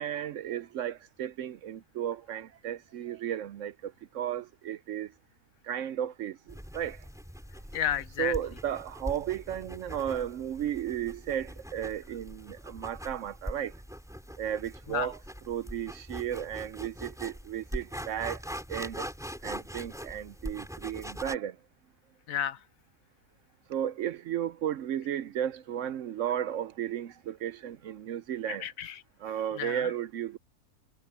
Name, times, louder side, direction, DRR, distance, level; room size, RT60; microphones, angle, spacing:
voice 1, 0.0-5.1 5.7-7.0 8.2-13.7 14.4-15.2 15.5-18.4 18.7-19.1 19.4-21.6 23.7-28.7 29.2-30.4, right 10 dB, 65° right, 0.8 m, -34 dB
sound 1, 6.5-21.4, equal, ahead, 4.1 m, -42 dB
voice 2, 7.7-8.3 14.9-15.1 22.3-22.6 28.5-29.0 29.6-29.9, left 10 dB, 70° left, 1.1 m, -32 dB
omnidirectional pair, 1.5 m